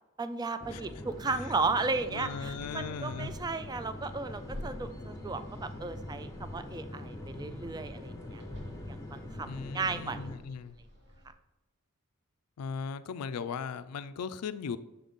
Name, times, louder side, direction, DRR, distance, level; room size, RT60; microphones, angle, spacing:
voice 1, 0.2-10.2, right 3 dB, 20° right, 11 dB, 0.3 m, -35 dB
sound 1, 0.6-10.4, left 1 dB, 15° left, 0.7 m, -43 dB
sound 2, 1.3-11.3, equal, 50° right, 1.1 m, -51 dB
voice 2, 2.1-3.4 9.5-10.8 12.6-14.8, left 6 dB, 90° left, 13 dB, 0.4 m, -38 dB
6.7 x 3.9 x 3.6 m, 1.0 s
head